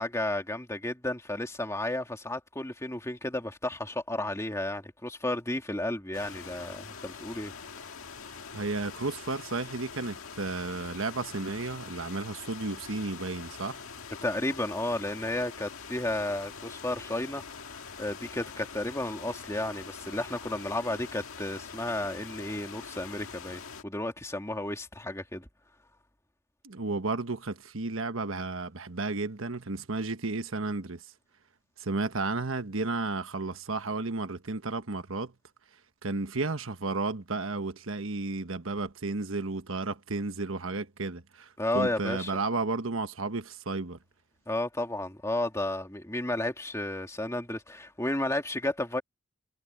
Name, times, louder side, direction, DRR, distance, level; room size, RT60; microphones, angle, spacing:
voice 1, 0.0-7.5 14.2-17.6 18.0-25.5 41.6-42.3 44.5-49.0, left 1 dB, 15° left, 2.4 m, -32 dB
sound 1, 6.1-23.8, left 5 dB, 85° left, 1.8 m, -44 dB
voice 2, 8.5-13.8 26.6-31.0 31.8-35.3 36.0-44.0, right 3 dB, 70° right, 1.3 m, -33 dB
head